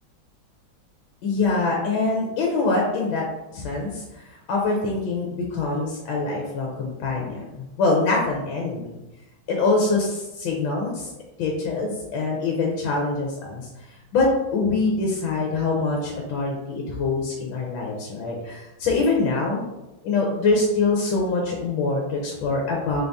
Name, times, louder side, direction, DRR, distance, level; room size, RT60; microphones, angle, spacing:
voice 1, 1.2-3.2 3.5-8.9 9.5-11.1 11.4-13.7 14.1-19.6 20.0-23.0, left 3 dB, 80° left, 0 dB, 1.5 m, -24 dB
3.9 x 2.6 x 3.4 m, 0.97 s
omnidirectional pair, 2.2 m